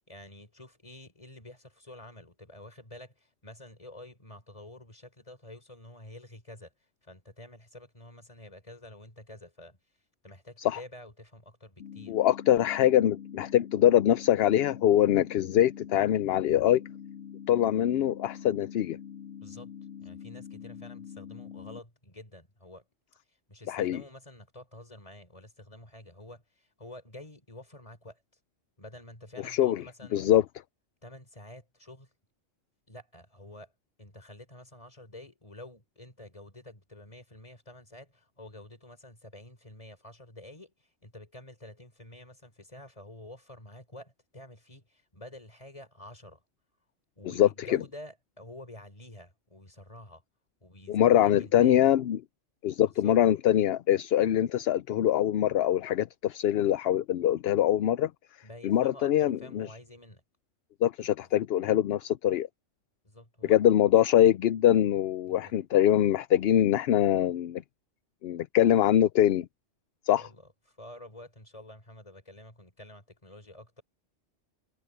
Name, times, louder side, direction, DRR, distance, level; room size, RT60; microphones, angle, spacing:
voice 1, 0.1-6.7 7.0-9.8 10.2-12.2 19.4-19.7 20.0-22.9 23.3-28.2 28.8-30.2 31.0-32.1 32.9-33.7 34.0-46.4 47.2-50.2 50.6-51.8 52.8-53.2 58.4-60.2 61.2-61.4 63.0-63.6 65.2-65.6 70.2-73.8, left 1 dB, 30° left, 3.8 m, -49 dB
sound 1, 11.8-21.8, left 8 dB, 85° left, 1.4 m, -44 dB
voice 2, 12.1-16.8 17.5-19.0 23.7-24.0 29.4-29.8 30.1-30.4 47.4-47.8 50.9-52.2 52.6-58.1 58.6-59.7 60.8-62.5 63.5-67.6 68.2-69.5 70.1-70.2, left 11 dB, 65° left, 0.7 m, -23 dB
omnidirectional pair, 1.2 m